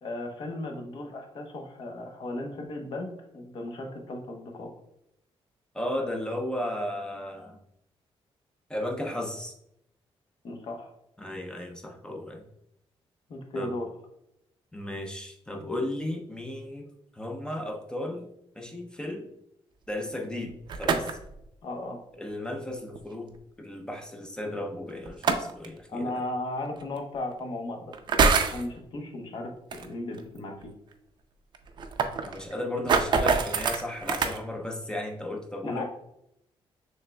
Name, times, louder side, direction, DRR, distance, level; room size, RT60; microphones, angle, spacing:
voice 1, 0.0-4.7 10.4-10.9 13.3-13.9 21.6-22.0 25.9-30.7 35.6-35.8, left 2 dB, 55° left, 2 dB, 0.8 m, -36 dB
voice 2, 5.7-7.6 8.7-9.5 11.2-12.4 13.5-13.7 14.7-18.3 18.6-19.3 19.9-20.5 20.8-21.2 22.2-23.3 23.6-26.1 32.2-35.8, left 1 dB, 10° left, 2 dB, 0.5 m, -34 dB
sound 1, 20.5-21.3 23.0-23.1 25.1-25.7 26.8-26.9 27.9-28.6 29.7-29.9 30.2-30.3 30.6-30.7 30.9-31.0 31.5-34.4, right 5 dB, 50° right, 0.5 m, -25 dB
6.3 x 3.3 x 2.2 m, 0.79 s
wide cardioid pair, 155°, 10 cm